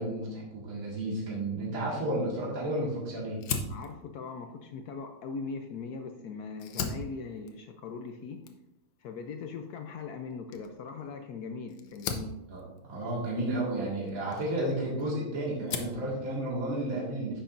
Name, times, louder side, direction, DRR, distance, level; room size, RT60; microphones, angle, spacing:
voice 1, 0.0-3.4 12.5-17.4, right 1 dB, 40° right, -4 dB, 2.3 m, -32 dB
Fire, 3.4-6.0 6.5-15.1 15.4-16.1, left 5 dB, 70° left, 1.4 m, -40 dB
voice 2, 3.7-8.4 9.0-12.3, left 4 dB, 85° left, 5 dB, 0.8 m, -40 dB
10.0 x 7.0 x 2.6 m, 0.96 s
omnidirectional pair, 2.4 m